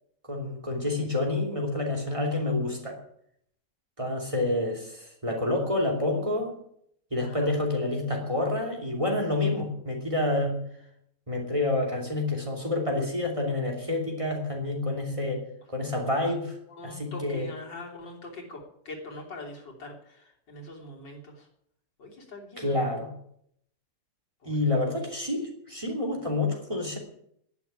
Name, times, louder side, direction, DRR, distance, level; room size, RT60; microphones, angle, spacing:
voice 1, 0.3-3.0 4.0-6.5 7.1-10.6 11.3-15.4 15.7-16.6 16.8-17.5 22.6-23.1 24.4-27.0, left 2 dB, 15° right, 2 dB, 2.8 m, -28 dB
voice 2, 7.2-7.6 16.7-21.5 22.0-22.9 24.4-24.6, left 2 dB, 75° left, -1 dB, 3.9 m, -43 dB
11.0 x 10.0 x 9.6 m, 0.72 s
omnidirectional pair, 1.9 m